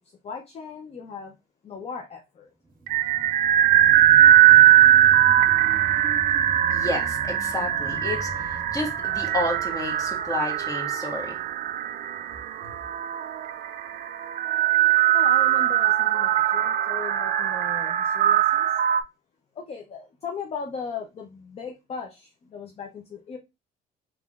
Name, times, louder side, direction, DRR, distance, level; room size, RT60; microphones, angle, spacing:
voice 1, 0.0-1.4 1.6-2.5 15.1-18.8 19.5-23.4, left 5 dB, 35° left, 0.6 m, -38 dB
sound 1, 2.6-11.7 12.2-12.3, right 2 dB, 30° right, 1.6 m, -41 dB
sound 2, 2.9-19.0, right 11 dB, 55° right, 0.4 m, -20 dB
voice 2, 6.7-11.4, left 2 dB, 20° left, 1.5 m, -31 dB
3.6 x 3.1 x 2.4 m
cardioid pair, 110°, 17 cm